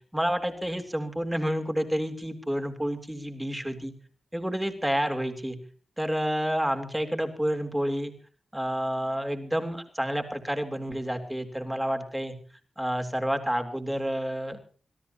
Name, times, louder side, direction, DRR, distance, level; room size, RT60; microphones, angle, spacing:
voice 1, 0.1-3.9 4.3-5.6 6.0-8.1 8.5-12.4 12.8-14.6, equal, 5° right, 5 dB, 3.7 m, -29 dB
26.5 x 17.5 x 3.0 m, 0.41 s
wide cardioid pair, 115°, 0 cm